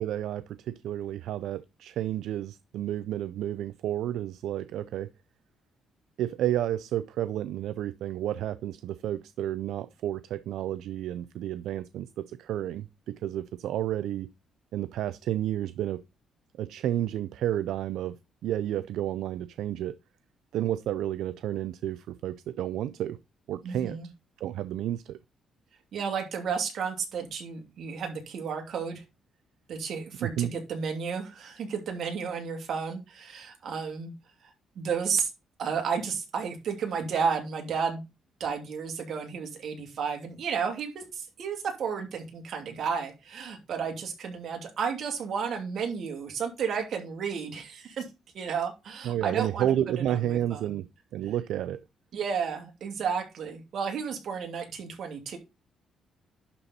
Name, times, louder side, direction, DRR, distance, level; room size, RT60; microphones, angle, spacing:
voice 1, 0.0-5.1 6.2-14.3 14.7-16.0 16.6-18.2 18.4-20.0 20.5-23.2 23.5-24.0 24.4-25.2 30.2-30.5 49.0-50.9 51.1-51.8, right 12 dB, 80° right, 0.4 m, -31 dB
voice 2, 23.6-24.1 25.9-29.0 29.7-34.1 34.4-35.3 35.6-38.0 38.4-48.0 48.3-50.6 52.1-55.4, right 6 dB, 65° right, 2.5 m, -32 dB
11.0 x 4.1 x 4.1 m
cardioid pair, 90°, 0 cm